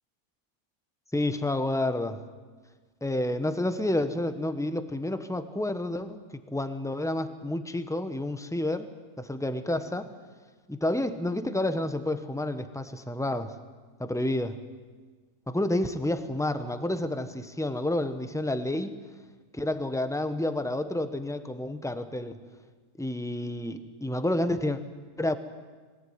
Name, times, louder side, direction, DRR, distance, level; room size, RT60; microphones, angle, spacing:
voice 1, 1.1-2.2 3.0-8.9 9.2-10.1 10.7-13.6 14.0-14.5 15.5-19.0 19.5-22.4 23.0-24.8 25.2-25.4, left 1 dB, ahead, 9 dB, 0.9 m, -29 dB
23.0 x 18.0 x 9.6 m, 1.4 s
omnidirectional pair, 1.8 m